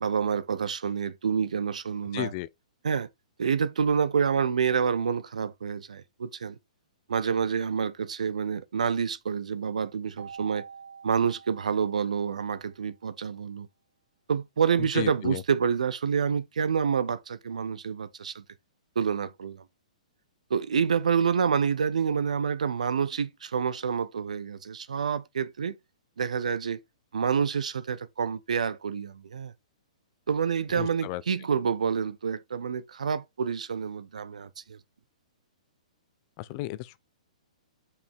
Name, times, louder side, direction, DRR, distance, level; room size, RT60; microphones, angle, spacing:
voice 1, 0.0-2.3 2.8-3.1 3.4-6.6 7.1-10.6 11.0-13.7 14.3-18.4 19.0-19.6 20.5-25.7 26.2-26.8 27.1-29.5 30.3-34.8, right 6 dB, 75° right, 0.7 m, -28 dB
voice 2, 2.1-2.5 14.9-15.4 30.8-31.2 36.4-37.0, left 17 dB, 40° left, 0.5 m, -33 dB
Keyboard (musical), 10.2-12.8, right 6 dB, 55° right, 1.3 m, -47 dB
5.5 x 4.8 x 3.6 m
hypercardioid pair, 125°, 4 cm